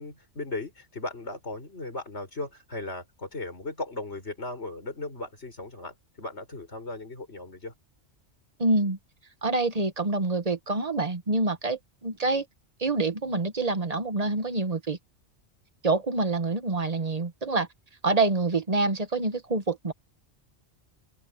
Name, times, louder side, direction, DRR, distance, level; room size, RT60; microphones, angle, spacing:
voice 1, 0.0-7.7, left 2 dB, 65° left, 5.8 m, -37 dB
voice 2, 8.6-9.0 9.4-12.5 12.8-15.0 15.8-17.7 18.0-19.9, right 3 dB, 35° right, 1.4 m, -26 dB
open air
omnidirectional pair, 1.2 m